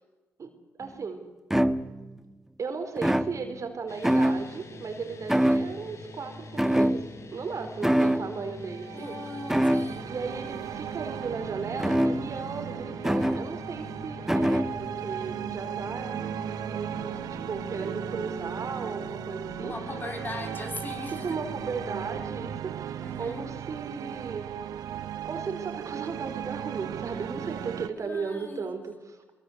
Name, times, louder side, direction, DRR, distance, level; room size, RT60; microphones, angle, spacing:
sound 1, 0.8-0.9 1.5-2.2 3.0-3.7 4.0-4.7 5.3-6.0 6.6-7.4 7.8-8.3 9.5-10.1 11.8-12.5 13.0-13.5 14.3-14.9, equal, 5° right, 1.5 m, -25 dB
voice 1, 0.8-1.2 2.6-7.0 7.3-9.2 10.0-16.2 16.7-16.9 17.3-19.7 21.2-24.5 25.2-29.3, right 5 dB, 55° right, 7 dB, 4.3 m, -36 dB
sound 2, 3.9-22.6, left 2 dB, 50° left, 4.3 m, -44 dB
sound 3, 8.6-27.9, right 10 dB, 75° right, 1.2 m, -37 dB
voice 2, 8.9-10.1 19.6-21.4 23.0-23.5 28.0-28.7, left 2 dB, 30° left, 5 dB, 7.0 m, -39 dB
23.0 x 23.0 x 8.1 m, 1.2 s
hypercardioid pair, 45°, 6 cm